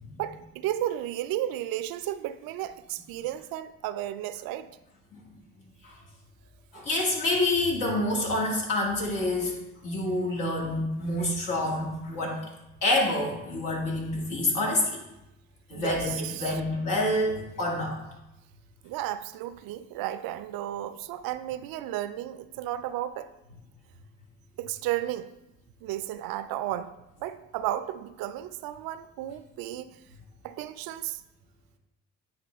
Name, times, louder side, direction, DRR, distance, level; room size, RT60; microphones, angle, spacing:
voice 1, 0.2-4.7 15.7-16.6 18.8-23.3 24.6-25.3 25.8-29.9 30.4-31.2, right 13 dB, 80° right, 0.5 m, -33 dB
voice 2, 6.7-12.4 12.8-15.0 15.7-18.0, left 1 dB, 65° left, 2.1 m, -27 dB
9.3 x 3.7 x 3.4 m
supercardioid pair, 70°, 35 cm